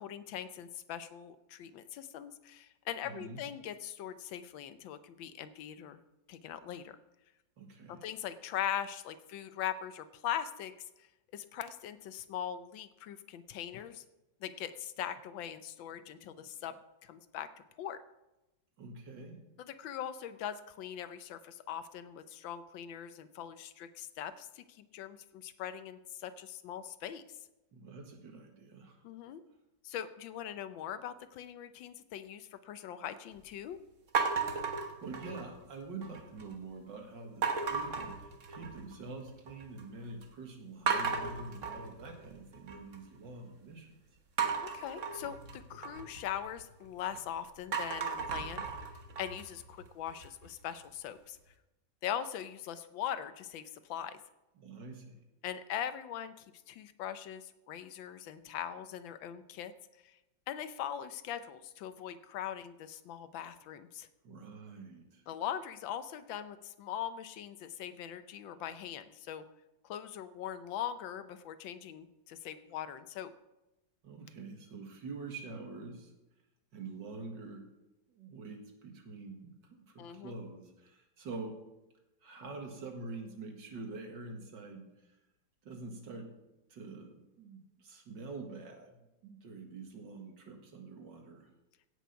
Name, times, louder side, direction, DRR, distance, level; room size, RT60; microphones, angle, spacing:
voice 1, 0.0-6.0 6.3-7.0 7.9-10.7 11.3-14.0 14.4-17.5 17.8-18.0 19.6-27.2 29.0-29.4 29.8-33.8 44.6-48.7 49.2-51.4 52.0-54.2 55.4-59.7 60.0-60.2 60.5-64.1 65.3-69.4 69.8-73.3 80.0-80.3, left 10 dB, 85° left, 12 dB, 1.5 m, -41 dB
voice 2, 3.0-3.4 7.6-8.0 18.8-19.4 27.7-29.0 35.0-44.0 54.6-55.2 64.2-65.2 74.0-76.1 76.7-77.7 78.1-81.6 82.2-84.9 85.6-86.3 86.7-91.5, right 3 dB, 70° right, 3 dB, 2.4 m, -46 dB
sound 1, 34.1-35.6 36.0-36.5 37.4-38.9 39.3-39.8 40.2-40.3 40.9-43.0 44.4-47.2 47.6-50.5, right 5 dB, 45° right, 1.5 m, -35 dB
16.5 x 6.1 x 5.7 m, 0.98 s
omnidirectional pair, 2.0 m